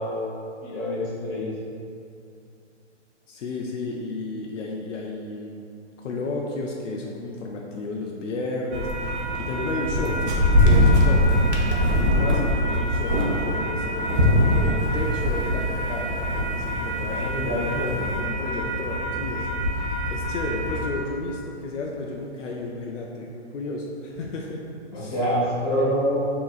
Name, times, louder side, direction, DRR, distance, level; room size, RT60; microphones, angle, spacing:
voice 1, 0.0-1.5 17.0-18.1 24.9-26.2, equal, 30° left, -8 dB, 1.2 m, -27 dB
voice 2, 3.3-5.7 6.0-10.2 10.6-11.3 12.0-19.8 20.1-24.6 24.9-25.1, left 2 dB, 75° left, -1 dB, 0.5 m, -33 dB
sound 1, 8.7-20.9, equal, 65° right, 0.8 m, -23 dB
4.0 x 2.9 x 2.3 m, 2.5 s
hypercardioid pair, 140°, 36 cm